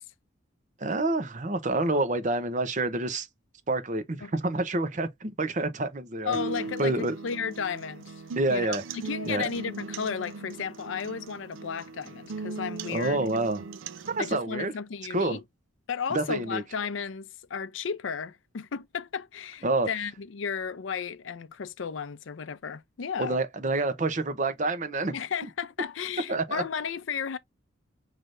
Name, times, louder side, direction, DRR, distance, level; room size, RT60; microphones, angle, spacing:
voice 1, 0.8-3.3 3.7-6.4 6.8-7.1 8.4-8.8 9.2-9.5 12.9-13.6 14.1-14.7 15.1-15.4 16.1-16.6 19.6-19.9 23.2-25.1 26.3-26.6, right 2 dB, 40° right, 0.7 m, -28 dB
voice 2, 6.2-8.1 8.5-13.2 14.2-15.4 15.9-23.4 25.1-27.4, left 6 dB, 80° left, 0.5 m, -34 dB
sound 1, 6.3-14.3, right 4 dB, 90° right, 0.5 m, -39 dB
5.8 x 3.3 x 2.5 m
head